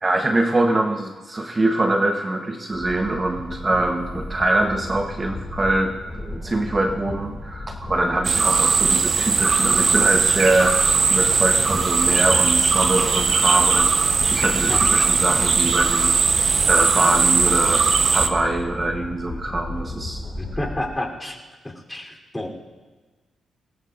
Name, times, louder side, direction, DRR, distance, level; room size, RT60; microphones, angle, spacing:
voice 1, 0.0-10.8 11.1-16.2 16.6-17.9 18.1-20.2, right 2 dB, 30° right, 4 dB, 1.2 m, -23 dB
sound 1, 2.7-20.9, left 2 dB, 40° left, 2.3 m, -34 dB
sound 2, 8.2-18.3, right 5 dB, 55° right, 1.1 m, -19 dB
voice 2, 20.4-21.4 21.6-22.5, left 1 dB, 15° left, 0 dB, 3.8 m, -30 dB
21.0 x 19.5 x 2.7 m, 1.3 s
supercardioid pair, 45°, 0 cm